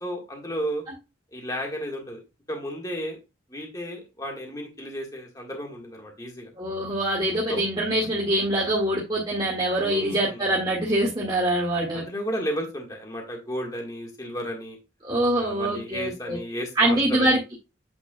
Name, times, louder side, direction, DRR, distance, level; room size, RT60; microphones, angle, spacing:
voice 1, 0.0-0.8 1.3-2.2 2.5-3.2 3.5-6.5 7.5-7.6 9.8-10.4 11.9-14.8 15.3-17.5, equal, 20° left, 1 dB, 1.7 m, -33 dB
voice 2, 6.6-12.0 15.0-16.4 16.8-17.4, right 1 dB, 25° right, -5 dB, 2.0 m, -24 dB
8.8 x 5.8 x 2.3 m, 0.26 s
head